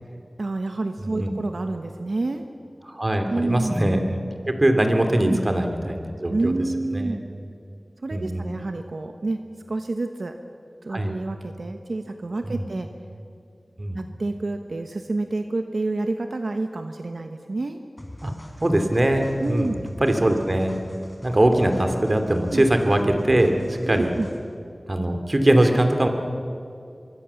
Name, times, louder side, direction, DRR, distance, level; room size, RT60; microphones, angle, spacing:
voice 1, 0.4-2.4 3.3-3.8 5.2-5.4 6.3-7.2 8.0-10.4 10.8-12.9 13.9-17.8 19.4-19.9 22.5-22.6 23.9-24.3, right 2 dB, 80° right, 6 dB, 1.1 m, -28 dB
voice 2, 1.0-1.3 2.9-4.2 4.5-6.5 6.9-7.2 8.1-8.5 10.9-11.1 12.4-12.7 13.8-14.0 18.2-18.3 18.6-19.7 20.0-20.7 21.2-24.1 24.9-26.1, right 1 dB, 40° right, 6 dB, 2.9 m, -21 dB
sound 1, 18.0-24.6, left 1 dB, 25° left, 4.1 m, -42 dB
25.0 x 23.0 x 7.1 m, 2.5 s
wide cardioid pair, 50°, 0 cm